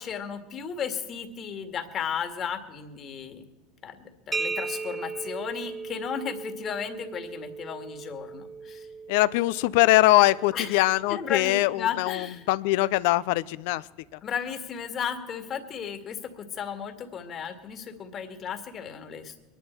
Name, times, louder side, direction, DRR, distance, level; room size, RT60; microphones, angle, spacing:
voice 1, 0.0-3.5 3.8-8.9 10.5-12.5 14.2-19.3, left 7 dB, 40° left, 6 dB, 2.0 m, -34 dB
sound 1, 4.3-11.9, right 4 dB, 15° right, 0.6 m, -38 dB
voice 2, 9.1-13.8, left 18 dB, 70° left, 18 dB, 0.5 m, -22 dB
23.0 x 11.0 x 4.5 m, 1.1 s
hypercardioid pair, 100°, 0 cm